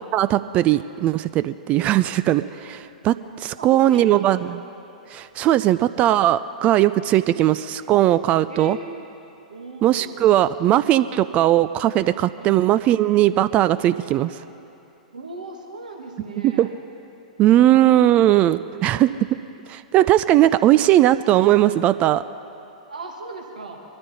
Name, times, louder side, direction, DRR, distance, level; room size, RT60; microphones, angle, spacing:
voice 1, 0.1-4.6 5.1-8.8 9.8-14.4 16.4-16.7 17.4-19.3 19.7-22.2, right 13 dB, 30° right, 14 dB, 0.3 m, -18 dB
voice 2, 3.6-4.6 7.3-7.5 8.5-9.1 9.5-10.3 12.4-12.6 15.1-16.7 17.6-18.0 22.9-23.8, right 3 dB, 75° right, 1 dB, 1.7 m, -38 dB
23.0 x 13.0 x 4.1 m, 2.8 s
figure-of-eight pair, 100°, 4 cm